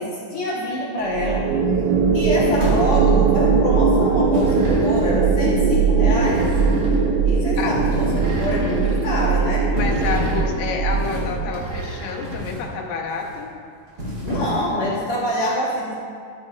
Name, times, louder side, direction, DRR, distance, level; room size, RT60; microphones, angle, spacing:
voice 1, 0.0-1.4 2.1-6.4 7.2-9.7 14.2-16.0, left 1 dB, 60° left, -6 dB, 1.5 m, -26 dB
sound 1, 1.1-11.6, right 5 dB, 80° right, 1.8 m, -19 dB
sound 2, 2.6-3.3 4.3-5.2 6.2-6.9 7.5-8.3 8.7-8.9 9.8-10.5 10.9-11.5 12.2-12.7 13.1-13.4 13.9-14.7, equal, 35° right, 2.6 m, -30 dB
sound 3, 4.4-5.2 6.1-7.1 8.1-9.0 9.8-10.7 11.5-12.5, right 2 dB, 50° right, 1.9 m, -32 dB
voice 2, 9.7-13.5, left 5 dB, 85° left, 1 dB, 2.6 m, -28 dB
13.0 x 8.6 x 2.4 m, 2.3 s
omnidirectional pair, 3.9 m